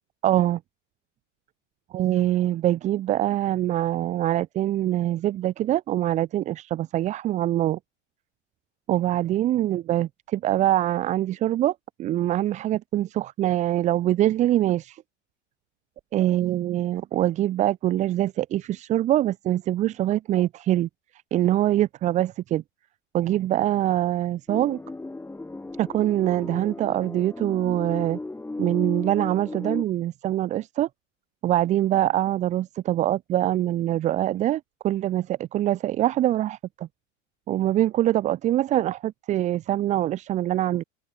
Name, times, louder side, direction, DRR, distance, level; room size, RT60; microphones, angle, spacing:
voice 1, 0.2-0.6 1.9-7.8 8.9-15.0 16.1-20.9 21.3-22.6 23.1-24.8 25.8-28.2 28.6-30.9 31.4-36.9 37.5-40.8, right 13 dB, 20° right, 0.5 m, -24 dB
sound 1, 24.5-29.8, left 2 dB, 5° left, 3.3 m, -35 dB
supercardioid pair, 155°, 37 cm